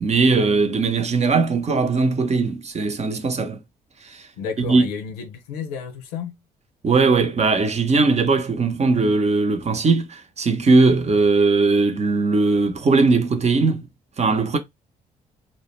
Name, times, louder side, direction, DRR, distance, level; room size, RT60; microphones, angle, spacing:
voice 1, 0.0-3.6 4.0-4.2 4.7-4.9 6.8-13.8 14.2-14.6, right 3 dB, 35° right, 0.7 m, -19 dB
voice 2, 4.4-6.4, left 6 dB, 90° left, 0.5 m, -31 dB
2.3 x 2.1 x 3.1 m
hypercardioid pair, 50°, 19 cm